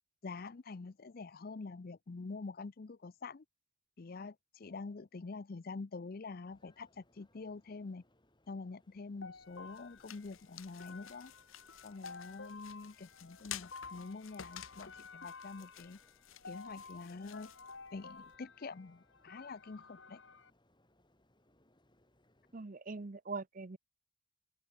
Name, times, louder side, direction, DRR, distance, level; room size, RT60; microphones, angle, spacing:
voice 1, 0.2-3.4 4.0-8.0 8.5-11.3 11.8-16.0 16.4-17.5 17.9-20.2, left 4 dB, 45° left, 0.5 m, -46 dB
sound 1, 6.5-22.6, left 1 dB, 20° left, 4.4 m, -72 dB
sound 2, 9.2-20.5, left 4 dB, 65° left, 3.0 m, -53 dB
sound 3, 9.4-18.4, left 11 dB, 80° left, 1.2 m, -53 dB
voice 2, 22.5-23.8, right 3 dB, 40° right, 0.7 m, -42 dB
open air
head